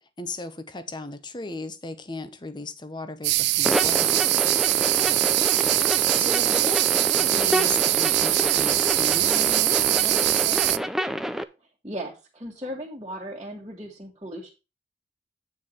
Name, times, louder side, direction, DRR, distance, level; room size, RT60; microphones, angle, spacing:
voice 1, 0.0-4.3 5.0-5.3 5.8-6.8 7.1-10.9, left 2 dB, 25° left, 0.8 m, -37 dB
sound 1, 3.2-10.8, right 18 dB, 65° right, 0.4 m, -22 dB
sound 2, 3.6-11.4, equal, ahead, 0.4 m, -28 dB
voice 2, 11.8-14.5, equal, 25° right, 1.6 m, -36 dB
8.7 x 4.7 x 5.5 m
head